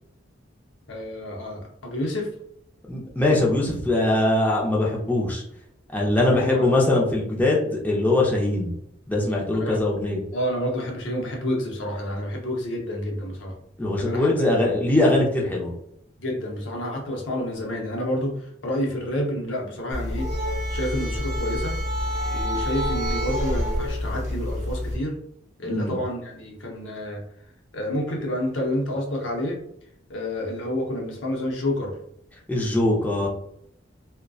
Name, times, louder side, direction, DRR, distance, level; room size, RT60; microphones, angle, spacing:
voice 1, 0.9-2.3 6.2-6.7 9.5-9.8 10.3-13.5 14.0-14.5 16.2-20.3 20.7-21.8 22.3-25.2 25.6-27.2 27.7-29.6 30.1-31.9, left 1 dB, 80° left, 1 dB, 0.7 m, -29 dB
voice 2, 2.9-5.4 5.9-8.7 9.1-10.2 13.8-15.7 25.6-26.0 32.5-33.3, left 2 dB, 10° left, -3 dB, 0.4 m, -22 dB
sound 1, 19.9-25.0, equal, 40° right, 0.9 m, -27 dB
2.6 x 2.1 x 2.3 m, 0.73 s
head